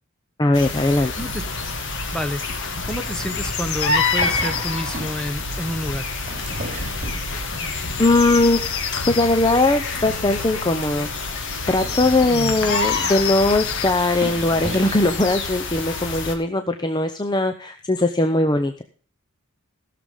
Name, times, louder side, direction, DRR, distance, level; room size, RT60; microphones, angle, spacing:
voice 1, 0.4-1.1 8.0-8.6 9.1-11.1 11.7-18.8, left 2 dB, 20° left, 7 dB, 0.6 m, -20 dB
sound 1, 0.5-16.3, left 3 dB, 55° left, 1.8 m, -28 dB
sound 2, 1.4-13.9, left 8 dB, 75° left, 0.9 m, -33 dB
voice 2, 2.9-6.1 12.3-12.6, equal, 5° left, 8 dB, 1.0 m, -29 dB
sound 3, 4.1-5.2 6.0-7.6 8.0-8.4 8.7-8.9 9.1-9.2 9.4-9.5 9.9-10.0 10.5-10.6 11.6-12.9 13.7-13.8 14.1-15.2 16.0-16.1, right 1 dB, 30° right, 4.7 m, -35 dB
15.5 x 6.8 x 5.4 m, 0.41 s
head